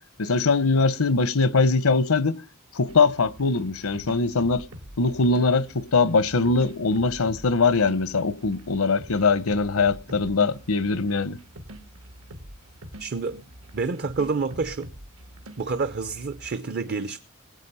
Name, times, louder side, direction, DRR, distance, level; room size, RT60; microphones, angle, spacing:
voice 1, 0.2-2.4 2.7-4.6 5.0-11.4, left 4 dB, 80° left, 0.8 m, -22 dB
sound 1, 2.9-16.6, equal, 85° right, 1.8 m, -45 dB
voice 2, 13.0-13.4 13.7-14.9 15.6-17.2, right 4 dB, 50° right, 0.6 m, -28 dB
20.5 x 8.2 x 5.5 m
head